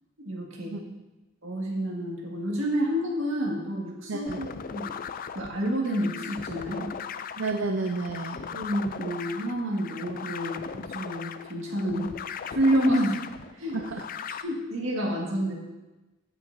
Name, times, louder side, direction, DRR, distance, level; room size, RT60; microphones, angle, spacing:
voice 1, 0.2-0.7 1.4-4.9 5.4-6.9 8.3-12.1 12.5-13.2 13.6-13.8 14.4-15.6, equal, 85° right, -2 dB, 1.9 m, -29 dB
voice 2, 4.1-4.4 7.4-8.4 13.7-14.4, right 3 dB, 70° right, 4 dB, 0.6 m, -31 dB
sound 1, 4.3-14.4, left 7 dB, 45° left, 0.4 m, -38 dB
15.5 x 5.9 x 2.7 m, 1.1 s
head